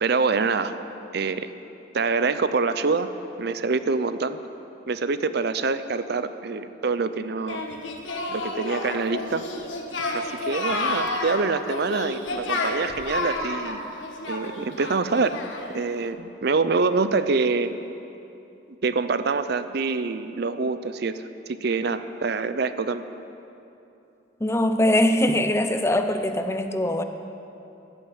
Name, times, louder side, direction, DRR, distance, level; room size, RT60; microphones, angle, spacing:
voice 1, 0.0-0.7 1.1-1.5 1.9-3.1 3.4-4.4 4.9-7.6 8.3-9.4 10.1-13.8 14.2-15.4 15.7-17.7 18.8-23.0, right 4 dB, 60° right, 12 dB, 0.6 m, -25 dB
Singing, 7.5-15.8, left 2 dB, 90° left, 1.6 m, -30 dB
voice 2, 24.4-27.0, left 1 dB, 15° left, 7 dB, 0.7 m, -22 dB
14.0 x 11.5 x 7.9 m, 2.8 s
head